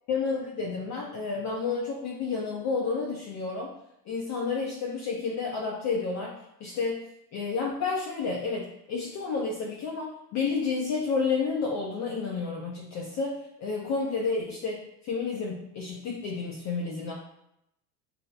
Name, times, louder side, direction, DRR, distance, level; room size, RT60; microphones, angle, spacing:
voice 1, 0.1-3.7 4.1-7.0 7.3-17.1, left 4 dB, 40° left, -2 dB, 0.4 m, -30 dB
2.9 x 2.0 x 2.2 m, 0.80 s
hypercardioid pair, 90°, 48 cm